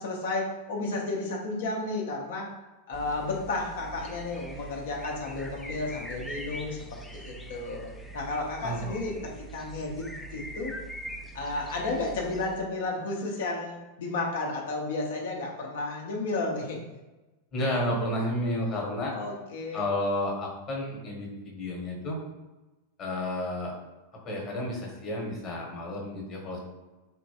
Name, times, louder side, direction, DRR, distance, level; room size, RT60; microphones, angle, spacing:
voice 1, 0.0-2.5 2.9-10.7 11.3-16.8 19.1-19.8, left 2 dB, 60° left, 0 dB, 0.8 m, -32 dB
sound 1, 2.9-12.6, right 1 dB, 5° left, 0.4 m, -42 dB
voice 2, 8.6-9.2 17.5-19.1 19.7-22.2 23.0-23.7 24.2-26.6, left 1 dB, 30° left, -1 dB, 1.2 m, -31 dB
4.3 x 3.0 x 2.8 m, 1.1 s
figure-of-eight pair, 90°, 0 cm